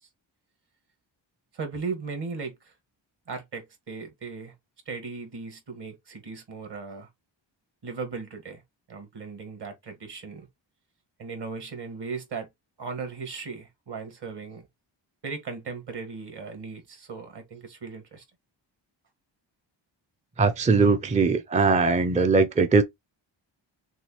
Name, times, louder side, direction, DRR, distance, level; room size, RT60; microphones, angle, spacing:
voice 1, 1.5-2.7 3.3-4.5 4.9-7.1 7.8-8.6 8.9-10.5 11.2-12.5 12.8-14.7 15.2-18.2, right 4 dB, 60° right, 1.8 m, -37 dB
voice 2, 20.4-22.8, right 4 dB, 15° right, 0.4 m, -20 dB
6.2 x 2.3 x 3.0 m
wide cardioid pair, 130°, 46 cm